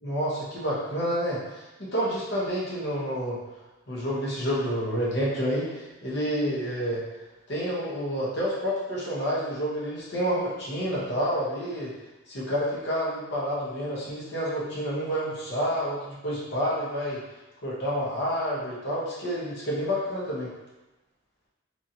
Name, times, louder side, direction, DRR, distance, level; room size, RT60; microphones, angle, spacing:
voice 1, 0.0-3.4 3.9-7.0 7.5-11.9 12.3-17.2 17.6-20.5, equal, 55° left, -7 dB, 1.0 m, -29 dB
3.0 x 2.6 x 2.7 m, 1.0 s
head